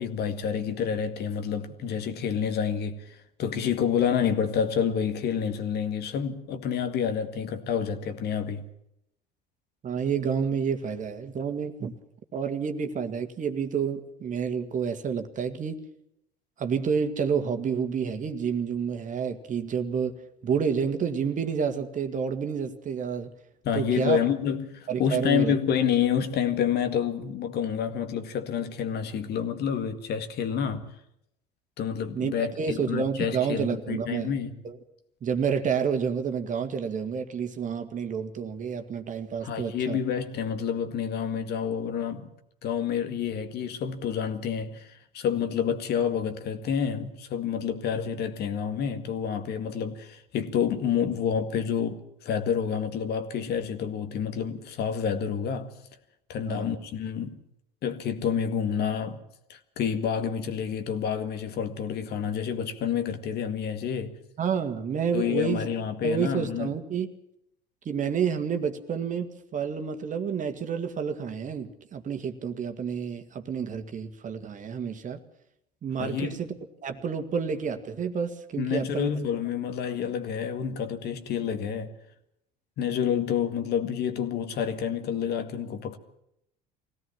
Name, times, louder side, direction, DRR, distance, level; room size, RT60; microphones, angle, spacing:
voice 1, 0.0-8.7 23.6-30.8 31.8-34.5 39.4-42.3 42.6-55.7 56.3-57.4 57.8-59.2 59.5-64.2 65.1-66.7 76.0-76.4 78.6-82.0 82.8-86.0, left 7 dB, 50° left, 2.0 m, -28 dB
voice 2, 9.8-11.9 12.3-15.8 16.6-23.3 23.7-24.2 24.9-25.5 32.1-34.3 34.6-34.8 35.2-40.0 56.5-56.7 64.4-65.7 66.0-67.1 67.9-75.2 75.8-76.5 76.8-79.1, right 6 dB, 40° right, 2.1 m, -29 dB
22.0 x 17.0 x 7.3 m
hypercardioid pair, 70°, 21 cm